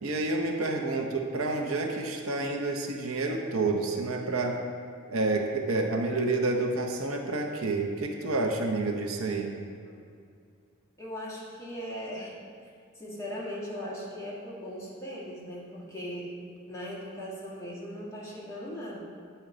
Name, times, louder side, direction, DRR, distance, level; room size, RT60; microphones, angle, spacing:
voice 1, 0.0-4.6 5.1-9.5, right 3 dB, 80° right, 2 dB, 0.8 m, -29 dB
voice 2, 9.8-10.1 11.0-12.3 13.0-16.3 16.7-19.0, equal, 15° left, -8 dB, 1.9 m, -39 dB
9.2 x 4.4 x 5.0 m, 2.3 s
head